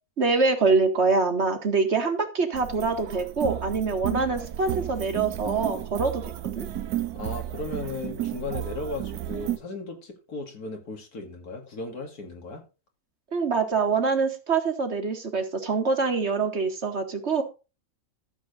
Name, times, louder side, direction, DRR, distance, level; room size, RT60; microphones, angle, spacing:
voice 1, 0.2-6.7 13.3-17.4, right 4 dB, 45° right, 2.0 m, -25 dB
sound 1, 2.5-9.6, right 13 dB, 85° right, 1.3 m, -33 dB
voice 2, 7.1-12.6, left 3 dB, 85° left, 2.6 m, -36 dB
13.5 x 6.9 x 4.0 m
omnidirectional pair, 1.6 m